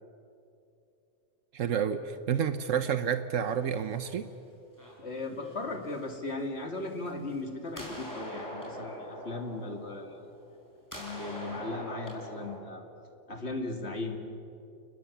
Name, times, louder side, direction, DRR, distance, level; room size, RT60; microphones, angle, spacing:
voice 1, 1.5-2.0 2.3-4.2, right 8 dB, 80° right, 11 dB, 1.2 m, -29 dB
sound 1, 3.4-4.3 4.8-6.3 7.0-7.4 7.7-10.6 10.9-12.6, equal, 15° left, 5.8 m, -43 dB
voice 2, 5.0-10.2 10.9-12.9 13.3-14.2, left 2 dB, 55° left, 5 dB, 2.6 m, -37 dB
30.0 x 20.0 x 7.2 m, 2.7 s
omnidirectional pair, 1.3 m